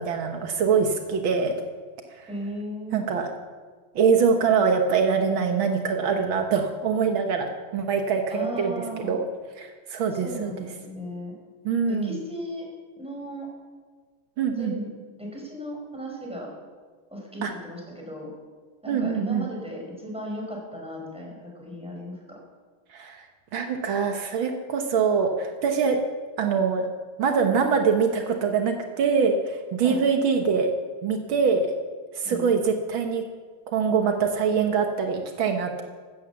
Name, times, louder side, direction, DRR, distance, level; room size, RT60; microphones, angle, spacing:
voice 1, 0.0-1.6 2.2-2.3 2.9-3.3 4.0-8.8 9.0-9.3 9.6-10.7 11.7-12.2 14.4-14.8 17.4-17.5 18.9-19.5 22.9-23.2 23.5-26.0 26.4-26.9 27.2-30.7 31.0-31.7 32.1-33.2 33.7-35.8, right 5 dB, 80° right, 4 dB, 2.0 m, -24 dB
voice 2, 2.3-3.0 8.3-9.1 10.1-11.3 11.9-12.6 13.0-13.5 14.6-14.9 15.2-16.5 17.1-18.3 18.8-22.4 29.8-30.0 32.2-32.5, equal, 5° right, -2 dB, 5.4 m, -36 dB
15.5 x 12.0 x 7.2 m, 1.5 s
omnidirectional pair, 2.2 m